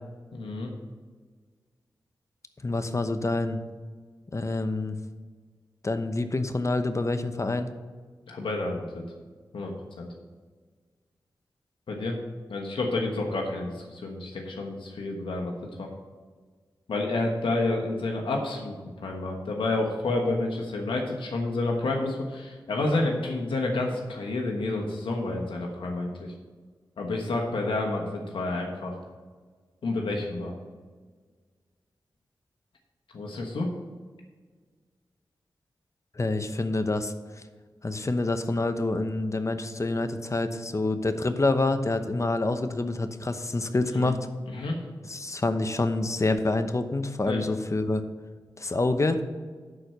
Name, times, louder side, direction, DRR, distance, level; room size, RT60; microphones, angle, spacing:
voice 1, 0.3-0.7 8.3-9.0 9.5-10.1 11.9-12.2 12.5-15.5 15.8-15.9 16.9-26.3 27.0-29.0 29.8-30.6 33.1-33.8 43.9-44.1 44.5-44.8 47.3-47.4, left 2 dB, 85° left, 1 dB, 1.2 m, -29 dB
voice 2, 2.6-3.6 4.3-5.0 5.8-7.7 36.2-37.1 37.8-44.2 45.1-48.0 48.6-49.2, left 2 dB, 35° left, 9 dB, 0.9 m, -27 dB
11.0 x 4.5 x 6.7 m, 1.5 s
cardioid pair, 45°, 8 cm